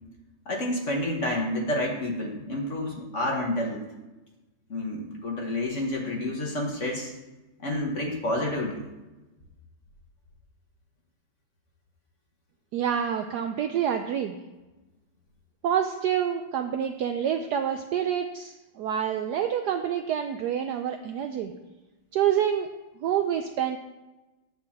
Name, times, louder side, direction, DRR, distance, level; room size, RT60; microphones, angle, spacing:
voice 1, 0.5-3.8 4.7-7.1 7.6-8.8, left 1 dB, 40° left, 0 dB, 1.4 m, -29 dB
voice 2, 12.7-14.4 15.6-21.5 22.1-22.7 23.0-23.8, right 9 dB, 75° right, 6 dB, 0.9 m, -27 dB
9.5 x 3.8 x 7.3 m, 1.1 s
omnidirectional pair, 2.2 m